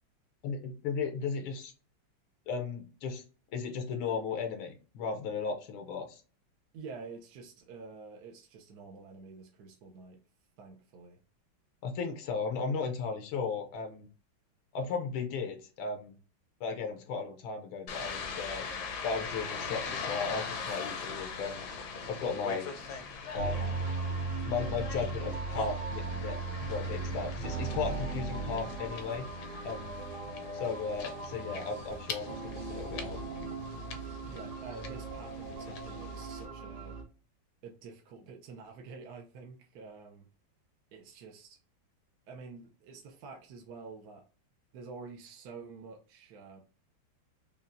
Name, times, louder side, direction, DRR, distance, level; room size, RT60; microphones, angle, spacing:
voice 1, 0.4-1.7 2.5-3.2 3.5-6.2 11.8-14.1 14.7-16.1 16.6-18.7 19.0-21.7 22.1-22.7 23.3-23.8 24.5-29.3 29.6-30.0 30.5-33.2, left 5 dB, 80° left, 5 dB, 1.5 m, -36 dB
voice 2, 6.7-10.2 10.6-11.2 34.3-37.0 37.6-40.3 40.9-41.6 42.3-44.2 44.7-46.6, right 4 dB, 65° right, 1 dB, 1.0 m, -48 dB
sound 1, 17.9-36.5, left 5 dB, 65° left, 1.1 m, -42 dB
sound 2, 19.3-34.6, equal, 35° right, 0.7 m, -56 dB
sound 3, 23.3-37.0, right 3 dB, 80° right, 2.1 m, -38 dB
5.4 x 2.3 x 2.4 m, 0.35 s
omnidirectional pair, 2.2 m